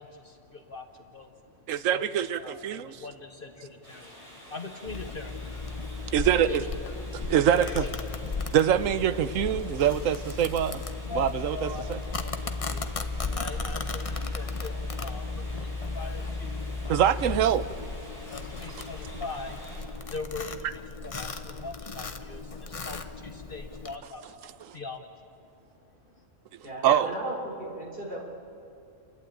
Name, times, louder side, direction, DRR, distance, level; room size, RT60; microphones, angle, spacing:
voice 1, 0.0-2.1 2.4-8.5 10.4-10.5 11.0-17.0 17.4-17.6 18.1-26.3, left 3 dB, 45° left, 5 dB, 1.1 m, -42 dB
voice 2, 1.7-2.9 6.1-6.6 7.3-7.8 8.5-10.8 11.2-12.0 16.9-17.9 26.8-27.1, right 10 dB, 85° right, 13 dB, 1.1 m, -24 dB
sound 1, 3.8-19.8, equal, 25° right, 6.3 m, -49 dB
Domestic sounds home sounds, 4.9-24.0, left 3 dB, 30° left, 0.8 m, -35 dB
voice 3, 26.6-28.2, right 1 dB, 45° right, -3 dB, 4.4 m, -35 dB
30.0 x 12.0 x 8.9 m, 2.6 s
omnidirectional pair, 1.3 m